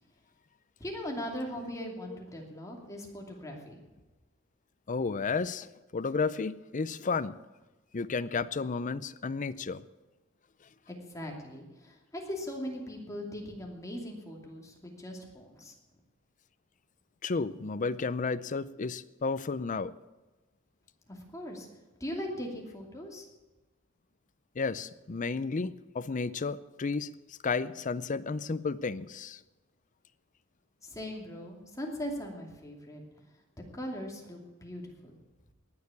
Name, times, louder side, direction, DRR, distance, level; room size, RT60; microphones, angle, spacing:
voice 1, 0.8-3.8 10.9-15.7 21.1-21.7 22.0-23.3 30.8-33.0 33.7-35.2, equal, 15° left, 0 dB, 2.6 m, -40 dB
voice 2, 4.9-7.3 7.9-9.8 17.2-19.9 24.6-29.4, left 4 dB, 35° left, 14 dB, 0.5 m, -32 dB
19.5 x 6.7 x 8.4 m, 1.1 s
head